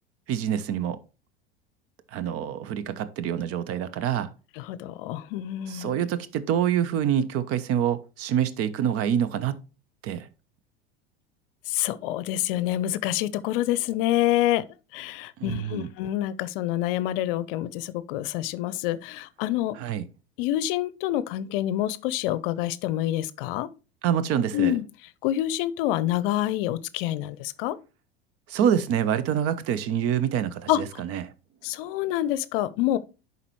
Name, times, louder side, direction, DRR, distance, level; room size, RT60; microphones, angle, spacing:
voice 1, 0.3-1.0 2.1-4.3 5.7-9.6 10.0-10.3 15.4-15.9 19.7-20.1 24.0-24.7 28.5-31.3, right 9 dB, 45° right, 0.8 m, -26 dB
voice 2, 4.6-6.0 11.7-14.6 14.9-19.7 20.4-23.7 24.5-24.8 25.2-27.8 30.7-30.8 31.6-33.0, left 13 dB, 60° left, 0.6 m, -27 dB
10.5 x 4.1 x 3.1 m
hypercardioid pair, 80°, 31 cm